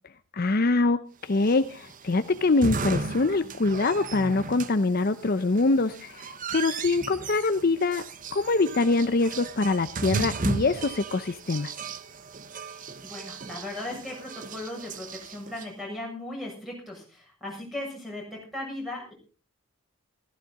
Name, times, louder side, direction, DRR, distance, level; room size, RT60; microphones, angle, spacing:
voice 1, 0.3-11.7, left 3 dB, 45° left, 11 dB, 0.6 m, -24 dB
sound 1, 1.3-15.6, right 3 dB, 35° right, 0.8 m, -36 dB
voice 2, 12.6-19.1, left 1 dB, ahead, -1 dB, 7.1 m, -37 dB
15.5 x 15.0 x 4.1 m, 0.36 s
head